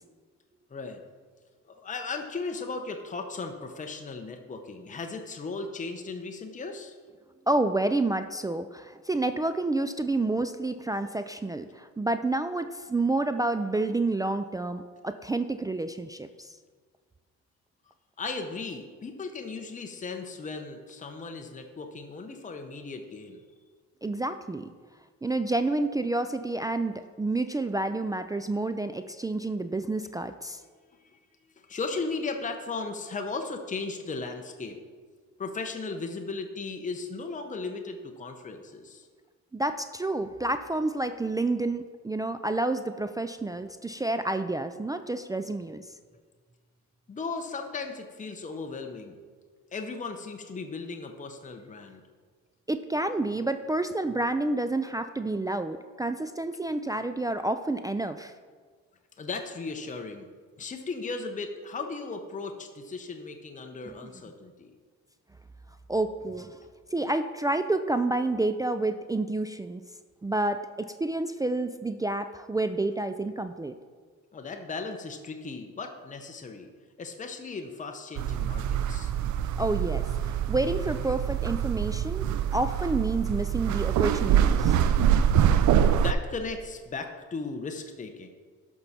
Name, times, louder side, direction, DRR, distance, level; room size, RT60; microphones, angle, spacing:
voice 1, 0.7-1.0 1.6-6.9 18.2-23.4 31.0-31.2 31.6-34.8 35.4-39.1 47.1-49.2 49.7-52.0 59.2-60.3 60.6-64.7 74.3-76.7 77.0-79.1 85.9-88.3, left 4 dB, 25° left, 4 dB, 0.8 m, -36 dB
voice 2, 7.5-16.5 24.0-24.7 25.2-30.6 39.5-45.9 52.7-58.3 63.9-64.0 65.9-66.5 66.9-69.8 70.2-73.8 79.6-84.8, right 2 dB, 10° right, 9 dB, 0.3 m, -29 dB
sound 1, 78.2-86.1, right 9 dB, 70° right, 0.5 m, -25 dB
12.0 x 5.9 x 4.2 m, 1.6 s
cardioid pair, 90°, 30 cm